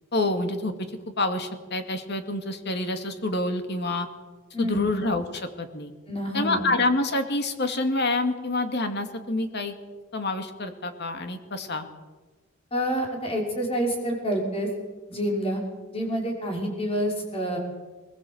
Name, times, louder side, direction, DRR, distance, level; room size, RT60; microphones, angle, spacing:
voice 1, 0.1-0.9 1.2-4.1 4.6-5.9 6.3-9.7 10.1-11.9, left 2 dB, 50° left, 6 dB, 2.5 m, -27 dB
voice 2, 4.5-4.9 6.1-6.6 12.7-14.7 15.1-15.6 15.9-17.6, equal, 30° left, 0 dB, 6.0 m, -27 dB
21.5 x 21.5 x 8.0 m, 1.3 s
head